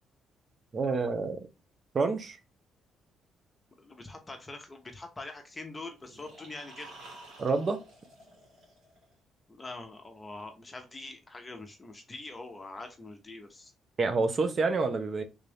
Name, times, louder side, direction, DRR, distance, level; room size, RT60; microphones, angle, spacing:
voice 1, 0.7-1.4 1.9-2.4 7.4-7.8 14.0-15.2, right 4 dB, 40° right, 8 dB, 0.8 m, -28 dB
voice 2, 3.8-6.9 9.5-13.7, left 2 dB, 20° left, 5 dB, 0.8 m, -44 dB
sound 1, 6.0-9.1, right 1 dB, 85° right, 2.2 m, -51 dB
3.4 x 2.5 x 3.4 m, 0.27 s
cardioid pair, 90°, 0 cm